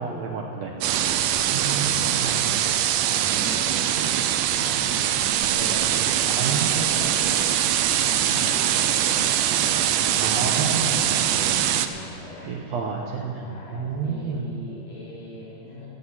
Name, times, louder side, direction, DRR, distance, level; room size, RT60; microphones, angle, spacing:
voice 1, 0.0-0.7 1.5-2.3 6.3-7.0 10.2-11.0 12.5-13.4 13.7-14.4, right 5 dB, 65° right, 0 dB, 1.9 m, -29 dB
voice 2, 0.6-5.0 5.4-7.5 7.9-12.6 13.4-15.9, left 2 dB, 80° left, -10 dB, 6.1 m, -40 dB
sound 1, 0.8-11.9, right 11 dB, 85° right, 2.2 m, -22 dB
14.5 x 9.2 x 9.7 m, 2.9 s
omnidirectional pair, 3.9 m